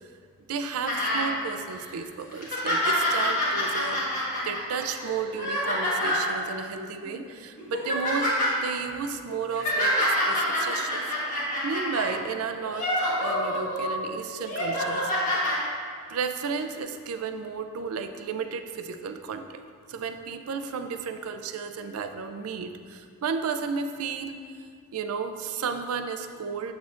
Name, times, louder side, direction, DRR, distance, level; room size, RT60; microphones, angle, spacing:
voice 1, 0.5-4.0 4.4-11.0 11.6-15.1 16.1-19.6 19.9-24.3 24.9-26.7, right 5 dB, 75° right, 7 dB, 0.4 m, -33 dB
sound 1, 0.9-1.3 1.8-1.9 2.3-6.3 7.0-7.2 7.6-8.5 9.3-12.1 12.6-13.9 14.4-15.6 16.5-16.6, left 1 dB, 35° left, 1.4 m, -27 dB
6.9 x 6.3 x 2.5 m, 2.1 s
head